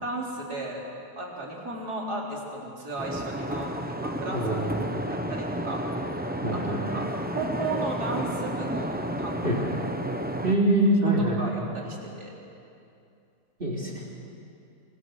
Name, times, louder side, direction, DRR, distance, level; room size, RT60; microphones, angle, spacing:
voice 1, 0.0-0.8 1.2-4.7 5.1-6.1 6.5-6.6 6.9-7.1 7.3-9.4 11.0-12.3, right 2 dB, 70° right, -2 dB, 4.6 m, -34 dB
sound 1, 3.0-10.6, right 1 dB, 10° right, 0.7 m, -31 dB
voice 2, 4.3-5.1 6.4-6.8 9.4-9.6 10.4-11.5 13.6-13.9, right 1 dB, 35° right, -4 dB, 3.9 m, -24 dB
27.5 x 26.0 x 6.5 m, 2.6 s
omnidirectional pair, 1.7 m